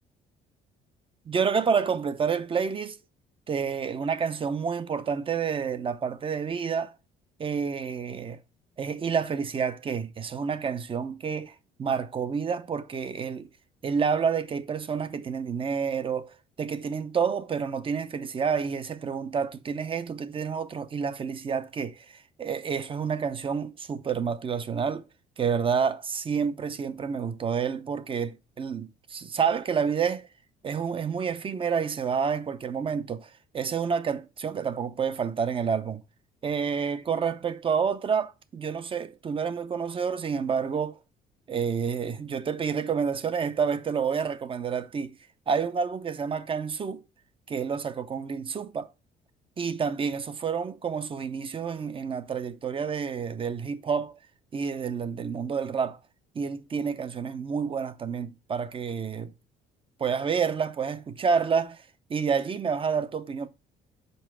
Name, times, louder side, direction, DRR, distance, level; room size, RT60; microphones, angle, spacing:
voice 1, 1.3-3.0 3.5-6.9 7.4-8.4 8.8-13.5 13.8-25.0 25.4-30.3 30.6-36.0 36.4-41.0 41.5-45.1 45.5-47.0 47.5-48.9 49.6-54.2 54.5-56.0 56.3-59.3 60.0-61.8 62.1-63.5, right 6 dB, 30° right, 0.7 m, -29 dB
5.4 x 4.6 x 6.1 m
cardioid pair, 110°, 17 cm